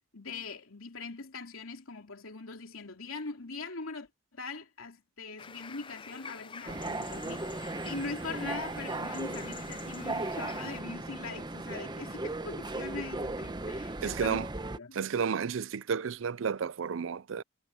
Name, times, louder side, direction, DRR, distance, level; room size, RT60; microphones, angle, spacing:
voice 1, 0.1-14.4 14.8-15.0, left 4 dB, 80° left, 2.9 m, -41 dB
sound 1, 5.4-10.8, left 6 dB, 25° left, 0.5 m, -48 dB
sound 2, 6.7-14.8, right 2 dB, 20° right, 0.9 m, -37 dB
voice 2, 14.0-14.5 14.9-17.4, right 6 dB, 65° right, 0.4 m, -32 dB
head